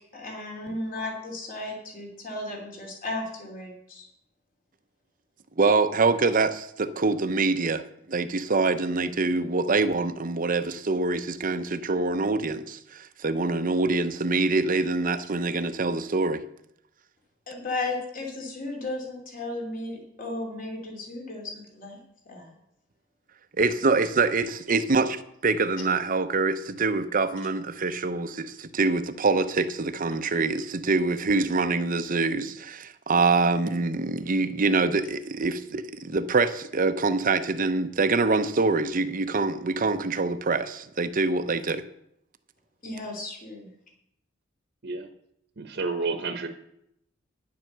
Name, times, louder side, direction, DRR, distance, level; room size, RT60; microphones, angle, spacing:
voice 1, 0.1-4.1 17.5-22.0 22.3-22.6 42.8-43.7, left 2 dB, 45° left, 0 dB, 2.9 m, -35 dB
voice 2, 5.6-16.4 23.6-41.8, right 3 dB, 45° right, 10 dB, 0.7 m, -25 dB
voice 3, 45.6-46.5, right 3 dB, 60° right, 6 dB, 1.1 m, -30 dB
10.5 x 7.6 x 6.7 m, 0.77 s
head